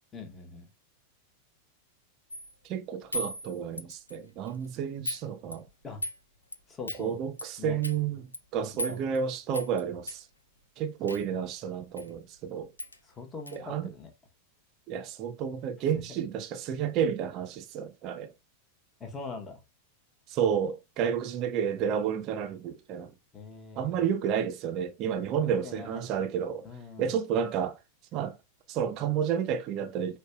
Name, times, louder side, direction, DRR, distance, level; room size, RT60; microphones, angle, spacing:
voice 1, 0.1-0.7 5.8-6.0 6.7-7.2 7.6-7.8 8.9-9.1 13.0-14.1 15.9-16.2 19.0-19.6 23.3-24.0 25.4-26.1 26.6-27.2, left 4 dB, 20° left, 0.8 m, -42 dB
sound 1, 2.3-2.5 3.1-4.2 4.4-4.7 5.1-5.2 5.5-6.2 6.5-6.6 6.9-7.0 7.4-7.5 7.8-8.0 8.3-8.4 8.8-9.2 9.5-9.8 10.1-10.2 11.1-11.3 12.0-12.1 12.4-12.5 12.8-13.0 13.5-13.6, left 1 dB, 85° left, 0.3 m, -36 dB
voice 2, 2.6-5.6 7.0-8.2 8.5-10.2 10.8-12.7 13.5-13.9 14.9-18.3 20.3-23.1 23.8-26.7 27.0-27.8 28.1-28.3 28.7-30.2, right 8 dB, 40° right, 0.4 m, -31 dB
5.2 x 2.1 x 2.3 m
figure-of-eight pair, 90°, 0 cm